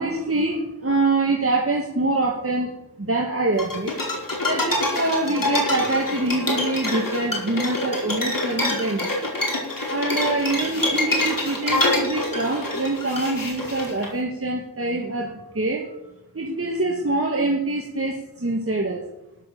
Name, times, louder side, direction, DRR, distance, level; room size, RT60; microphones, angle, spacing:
voice 1, 0.0-2.7 3.0-3.9 4.4-9.3 9.9-15.9 16.3-19.0, right 2 dB, 35° right, 0 dB, 2.1 m, -25 dB
sound 1, 3.6-14.1, left 2 dB, 55° left, 4.7 m, -25 dB
13.5 x 11.0 x 6.9 m, 0.91 s
wide cardioid pair, 55°, 40 cm